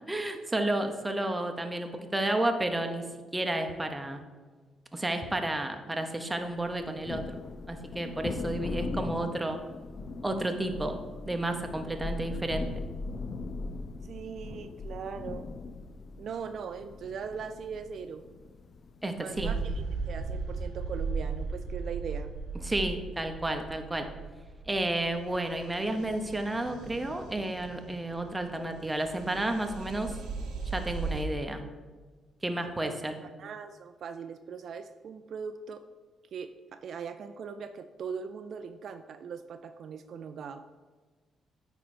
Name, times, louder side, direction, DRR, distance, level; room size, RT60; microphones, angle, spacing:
voice 1, 0.1-4.2 4.9-7.4 7.7-9.6 10.2-12.7 19.0-19.5 22.6-24.1 24.7-30.2 30.7-31.6 32.4-33.2, right 1 dB, 15° right, 5 dB, 0.8 m, -31 dB
Thunder, 6.6-19.8, left 3 dB, 50° left, 0.4 m, -40 dB
voice 2, 14.0-15.4 16.2-18.2 19.2-22.3 32.8-33.0 33.4-35.8 36.3-40.6, right 6 dB, 60° right, 9 dB, 0.3 m, -40 dB
sound 1, 19.4-31.2, right 4 dB, 90° right, 1.1 m, -37 dB
9.1 x 4.4 x 4.3 m, 1.4 s
cardioid pair, 90°, 0 cm